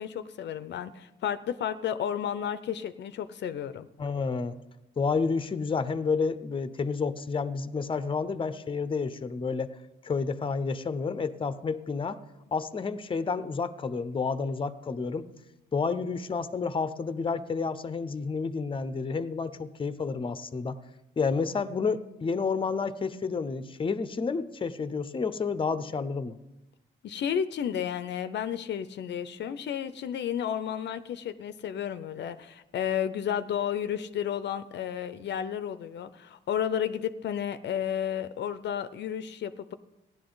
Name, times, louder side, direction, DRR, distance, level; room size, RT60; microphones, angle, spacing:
voice 1, 0.0-3.9 27.0-39.7, left 9 dB, 60° left, 12 dB, 0.6 m, -32 dB
voice 2, 4.0-4.6 5.0-9.7 10.0-12.2 12.5-15.3 15.7-20.8 21.2-26.4, left 5 dB, 25° left, 13 dB, 0.7 m, -30 dB
16.5 x 11.0 x 3.9 m, 0.96 s
cardioid pair, 90°, 20 cm